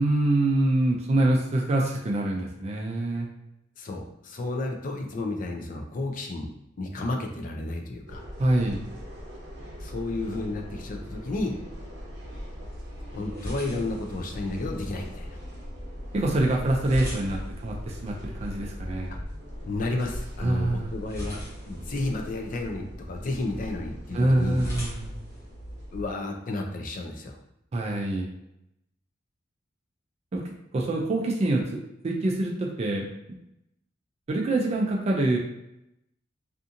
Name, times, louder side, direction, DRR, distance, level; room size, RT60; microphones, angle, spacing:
voice 1, 0.0-3.3 8.4-8.8 16.1-19.2 20.4-21.0 24.1-25.1 27.7-28.3 30.3-30.4 30.7-33.0 34.3-35.4, right 1 dB, 35° right, 0 dB, 0.3 m, -25 dB
voice 2, 3.8-6.5 6.8-8.2 9.8-11.5 13.1-15.4 19.6-21.4 21.7-24.6 25.9-27.4, left 2 dB, 45° left, 3 dB, 0.4 m, -32 dB
sound 1, 8.1-26.1, equal, 65° right, 0.7 m, -40 dB
sound 2, 12.3-26.3, equal, 15° left, 0.7 m, -43 dB
2.6 x 2.5 x 2.5 m, 0.84 s
head